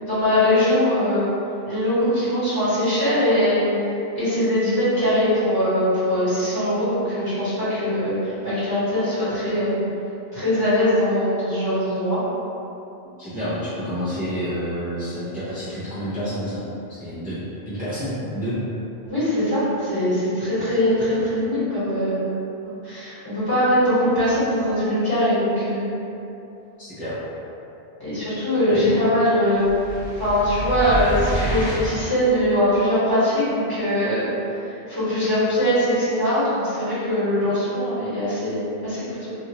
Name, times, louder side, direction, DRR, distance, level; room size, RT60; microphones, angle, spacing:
voice 1, 0.0-1.3 1.6-3.7 4.1-9.7 10.3-12.2 19.0-22.2 22.8-25.9 28.0-29.6 30.2-34.3 34.6-39.3, left 1 dB, 20° left, -14 dB, 1.4 m, -21 dB
voice 2, 13.2-16.6 16.9-17.4 17.7-18.6 26.8-27.2 28.7-29.0, equal, 10° right, -14 dB, 0.7 m, -29 dB
sound 1, 29.5-32.2, right 1 dB, 65° left, 1.1 m, -28 dB
3.3 x 2.6 x 2.9 m, 2.9 s
omnidirectional pair, 1.0 m